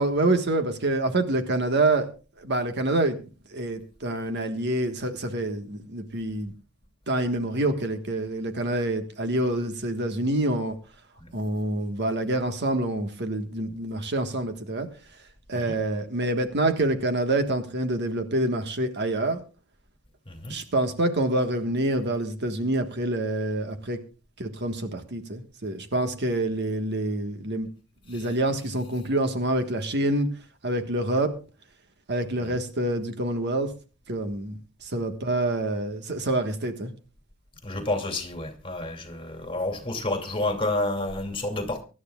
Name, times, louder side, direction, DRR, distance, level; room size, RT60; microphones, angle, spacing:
voice 1, 0.0-2.1 2.4-3.1 3.5-6.5 7.1-10.7 11.3-14.9 15.5-19.4 20.5-24.0 24.4-27.7 28.1-30.3 30.6-31.3 32.1-33.7 34.1-36.9, right 1 dB, 55° right, 1.5 m, -26 dB
voice 2, 20.3-20.6 28.1-28.3 32.4-32.5 37.6-41.8, left 2 dB, 25° left, 2.6 m, -30 dB
24.0 x 11.5 x 2.4 m
head